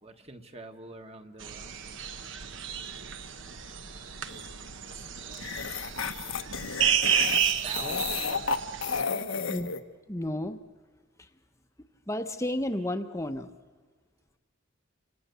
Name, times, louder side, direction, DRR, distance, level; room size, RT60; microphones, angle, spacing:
voice 1, 0.0-1.7 4.9-5.6 6.0-6.1 7.5-8.6 9.0-9.3, right 2 dB, 30° right, 6 dB, 1.5 m, -46 dB
sound 1, 1.4-9.0, right 9 dB, 65° right, 1.2 m, -31 dB
sound 2, 4.3-4.5 5.3-9.8, left 5 dB, 70° left, 1.1 m, -32 dB
voice 2, 10.1-10.6 12.1-13.5, left 1 dB, 15° left, 8 dB, 0.9 m, -31 dB
29.0 x 27.0 x 6.9 m, 1.5 s
head